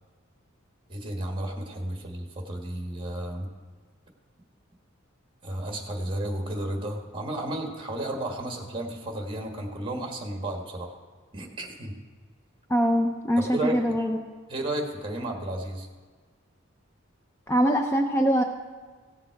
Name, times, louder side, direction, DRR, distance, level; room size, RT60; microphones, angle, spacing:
voice 1, 0.9-3.5 5.4-11.0 11.3-11.9 13.4-13.8 14.5-15.9, right 1 dB, 25° right, 2 dB, 1.4 m, -33 dB
voice 2, 12.7-14.2 17.5-18.4, equal, 15° left, 3 dB, 0.5 m, -23 dB
16.5 x 7.3 x 4.6 m, 1.5 s
head